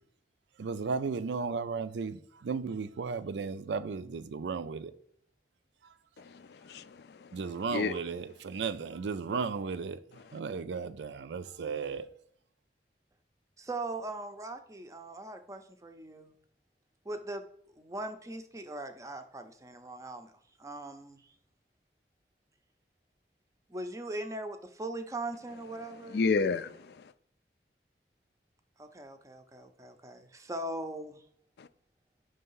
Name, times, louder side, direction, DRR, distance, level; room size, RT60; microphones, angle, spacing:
voice 1, 0.6-4.9 7.3-10.0 10.3-12.1, right 5 dB, 85° right, 0.4 m, -35 dB
voice 2, 6.2-7.3 7.7-8.0 26.1-27.0 31.6-31.7, left 4 dB, 65° left, 0.3 m, -31 dB
voice 3, 13.6-16.3 17.0-21.4 23.7-26.2 28.8-31.2, right 2 dB, 20° right, 0.5 m, -40 dB
5.5 x 3.4 x 5.5 m
head